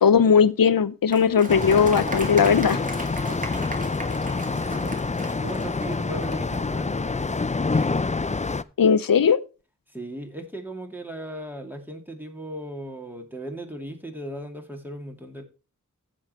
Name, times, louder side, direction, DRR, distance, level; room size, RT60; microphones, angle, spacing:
voice 1, 0.0-2.8 8.8-9.4, left 6 dB, 85° left, 0.6 m, -18 dB
Applause, 1.1-6.6, right 1 dB, 25° right, 2.2 m, -37 dB
sound 1, 1.5-8.6, left 3 dB, 20° left, 0.4 m, -27 dB
voice 2, 4.7-5.0 5.3-7.4 7.7-8.0 9.9-15.4, right 1 dB, 5° right, 2.4 m, -37 dB
15.0 x 6.2 x 3.1 m
wide cardioid pair, 50°, 34 cm